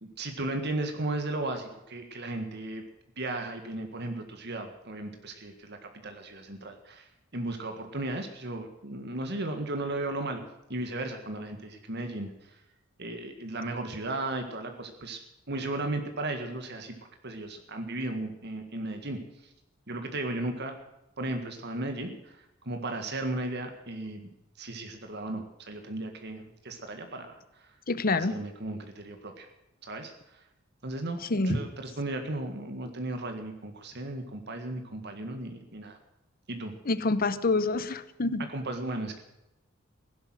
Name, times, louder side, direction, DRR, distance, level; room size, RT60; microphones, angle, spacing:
voice 1, 0.0-2.8 3.2-10.4 10.7-12.6 13.0-15.2 15.5-16.9 17.2-19.5 19.9-20.8 21.2-24.3 24.6-27.7 28.1-29.5 29.8-30.4 30.8-36.0 36.5-36.8 38.5-39.2, right 2 dB, 55° right, 5 dB, 1.8 m, -35 dB
voice 2, 27.9-28.4 31.3-31.6 36.9-38.5, left 3 dB, 45° left, 14 dB, 0.9 m, -27 dB
16.5 x 11.5 x 6.3 m, 0.91 s
head